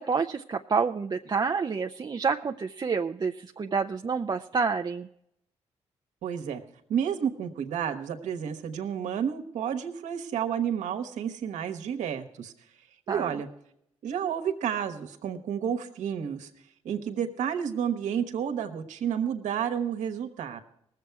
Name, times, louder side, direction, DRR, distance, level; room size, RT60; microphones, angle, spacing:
voice 1, 0.0-5.1 13.1-13.4, right 5 dB, 35° right, 5 dB, 0.5 m, -28 dB
voice 2, 6.2-6.6 6.9-12.5 13.1-13.5 14.0-16.5 16.8-20.6, right 8 dB, 80° right, 7 dB, 1.2 m, -30 dB
19.0 x 7.5 x 4.6 m, 0.76 s
cardioid pair, 65°, 12 cm